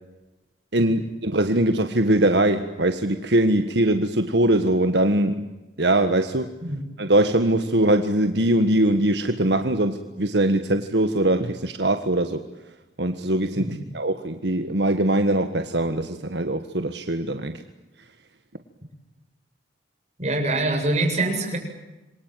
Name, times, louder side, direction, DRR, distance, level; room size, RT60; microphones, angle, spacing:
voice 1, 0.7-5.5 5.8-6.5 7.0-12.4 13.0-17.6, right 1 dB, 75° right, 7 dB, 1.6 m, -22 dB
voice 2, 20.2-21.6, right 2 dB, 40° right, 2 dB, 7.7 m, -24 dB
27.5 x 23.0 x 9.3 m, 1.0 s
head